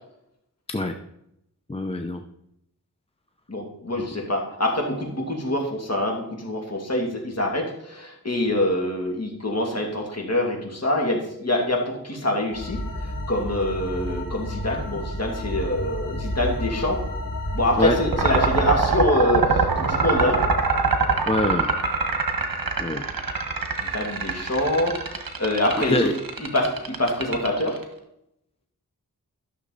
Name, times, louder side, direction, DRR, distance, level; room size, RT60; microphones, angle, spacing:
voice 1, 1.7-2.2 17.8-18.0 21.3-21.7 22.8-23.0 25.9-26.1, left 2 dB, 15° left, 5 dB, 0.7 m, -24 dB
voice 2, 3.5-17.0 17.5-20.4 23.8-25.0 25.4-26.1 26.4-27.8, left 1 dB, 45° left, 0 dB, 2.6 m, -25 dB
sound 1, 12.5-18.7, left 1 dB, 65° left, 3.5 m, -31 dB
sound 2, 18.1-27.8, right 4 dB, 70° right, 1.5 m, -24 dB
13.5 x 6.5 x 4.0 m, 0.78 s
wide cardioid pair, 70°, 36 cm